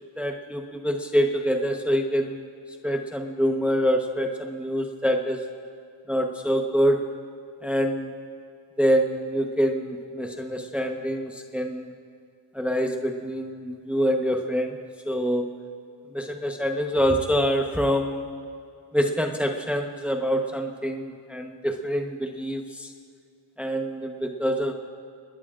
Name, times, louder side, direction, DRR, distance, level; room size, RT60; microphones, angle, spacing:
voice 1, 0.0-2.4 2.8-5.5 6.1-7.0 7.6-8.1 8.8-11.9 12.5-14.8 15.1-15.5 16.1-18.3 18.9-22.9 23.6-24.7, equal, 5° right, 3 dB, 1.0 m, -25 dB
27.5 x 20.5 x 2.5 m, 2.4 s
wide cardioid pair, 95°, 49 cm